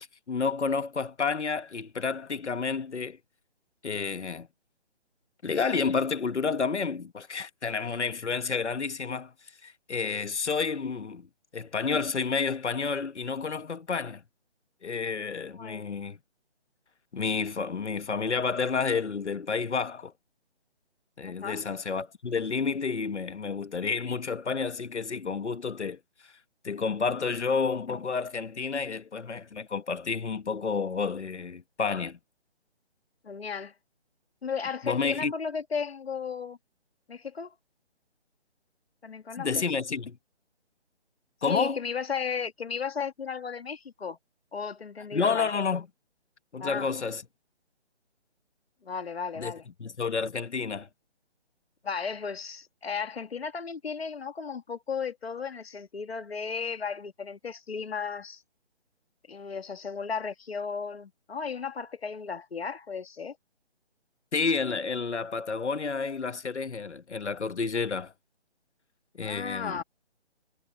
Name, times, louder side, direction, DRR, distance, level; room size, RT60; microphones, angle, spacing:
voice 1, 0.0-3.2 3.8-4.5 5.4-9.3 9.6-11.3 11.5-14.2 14.8-16.2 17.1-20.1 21.2-26.3 26.6-32.2 34.8-35.3 39.4-40.2 41.4-41.8 45.1-45.9 46.5-47.2 49.3-49.5 49.8-50.9 64.3-68.1 69.1-69.8, left 5 dB, 85° left, 1.5 m, -30 dB
voice 2, 21.2-21.6 33.2-33.7 34.4-36.6 37.1-37.5 39.0-39.6 41.5-44.2 44.5-45.5 46.6-46.9 48.8-49.6 51.8-58.4 59.3-63.4 69.2-69.8, left 6 dB, 65° left, 1.7 m, -35 dB
hypercardioid pair, 175°, 34 cm